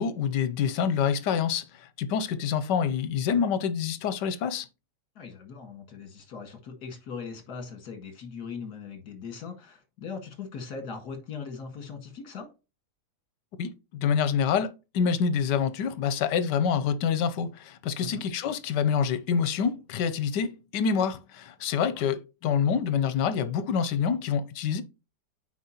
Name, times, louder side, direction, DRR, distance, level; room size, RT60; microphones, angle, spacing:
voice 1, 0.0-4.7 13.6-24.8, left 7 dB, 85° left, 1.3 m, -27 dB
voice 2, 5.2-12.5 18.0-18.2 21.9-22.0, left 5 dB, 65° left, 2.3 m, -40 dB
9.3 x 4.5 x 2.9 m
omnidirectional pair, 1.8 m